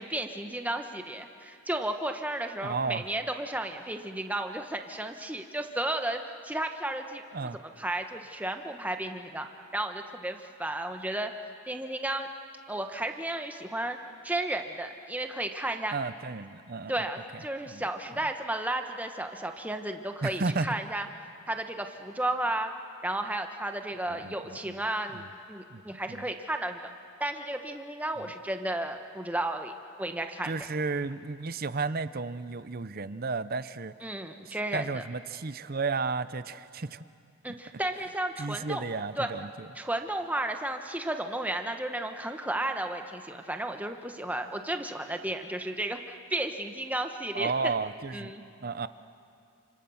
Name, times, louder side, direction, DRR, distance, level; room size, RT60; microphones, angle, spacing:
voice 1, 0.0-9.5 9.7-11.3 11.7-12.3 12.7-14.0 14.2-15.9 16.9-21.1 21.5-22.7 23.0-25.2 25.5-26.9 27.2-29.7 30.0-30.6 34.0-35.0 37.4-38.8 39.2-39.3 39.7-47.7 48.1-48.4, right 1 dB, 5° right, 5 dB, 1.2 m, -33 dB
voice 2, 2.6-3.0 7.3-7.6 15.9-17.1 17.7-17.8 20.2-20.7 24.1-24.8 25.1-25.3 25.7-26.2 28.2-28.3 30.4-33.9 34.5-37.0 38.4-39.7 47.3-48.3 48.6-48.9, right 4 dB, 40° right, 14 dB, 0.7 m, -33 dB
29.5 x 26.0 x 7.1 m, 2.5 s
head